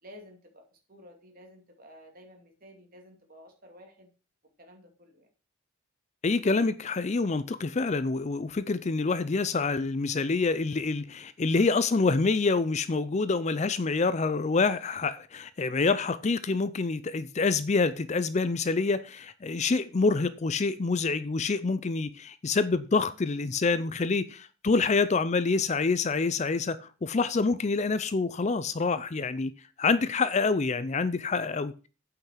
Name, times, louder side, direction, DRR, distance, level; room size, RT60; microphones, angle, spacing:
voice 1, 0.0-4.1 4.6-5.3, equal, 45° right, 2.5 m, -52 dB
voice 2, 6.2-29.5 29.8-31.7, left 4 dB, 35° left, 0.4 m, -27 dB
8.7 x 5.8 x 5.8 m
head